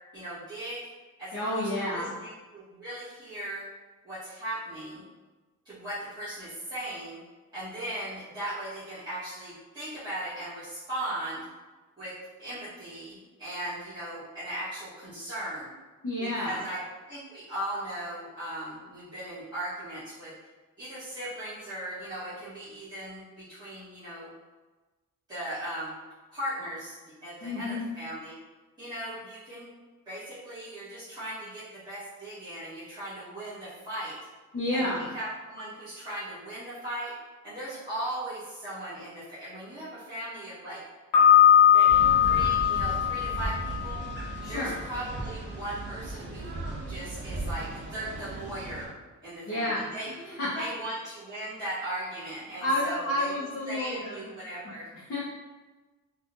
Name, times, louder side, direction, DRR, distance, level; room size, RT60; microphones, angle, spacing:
voice 1, 0.1-0.8 1.2-3.7 4.0-5.0 5.6-7.2 7.5-11.4 12.0-12.1 12.4-15.7 16.2-16.8 17.1-20.3 20.8-24.3 25.3-25.9 26.3-28.3 28.8-29.7 30.0-34.2 34.7-37.1 37.4-40.8 41.6-41.9 42.2-44.0 44.5-46.6 46.9-48.9 49.2-50.1 50.5-53.3 53.7-54.9, right 1 dB, 15° right, -16 dB, 1.4 m, -38 dB
voice 2, 1.3-2.1 16.0-16.6 27.4-27.9 34.5-35.1 44.4-44.7 49.5-49.8 50.2-50.6 52.6-54.2 55.1-55.2, left 1 dB, 45° left, -8 dB, 0.8 m, -30 dB
Piano, 41.1-44.0, left 9 dB, 80° left, 1.2 m, -20 dB
sound 1, 41.9-48.9, right 2 dB, 35° right, 0.5 m, -36 dB
3.7 x 2.4 x 2.6 m, 1.2 s
wide cardioid pair, 150°, 32 cm